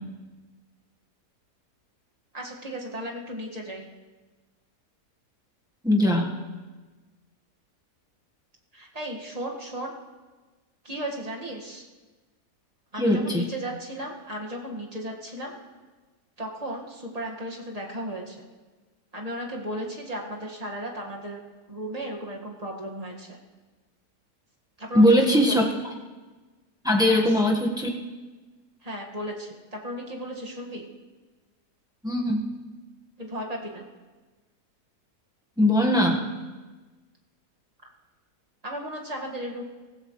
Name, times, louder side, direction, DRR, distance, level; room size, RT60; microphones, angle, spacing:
voice 1, 2.3-3.9 8.7-9.9 10.8-11.9 12.9-15.5 16.4-18.5 19.1-21.4 21.7-23.4 24.8-25.6 27.0-27.4 28.8-30.9 33.2-33.9 38.6-39.6, equal, 25° right, -1 dB, 1.8 m, -35 dB
voice 2, 5.8-6.3 13.0-13.4 24.9-25.7 26.8-27.9 32.0-32.4 35.6-36.2, equal, 5° right, -1 dB, 1.2 m, -20 dB
24.5 x 15.0 x 3.2 m, 1.3 s
omnidirectional pair, 1.7 m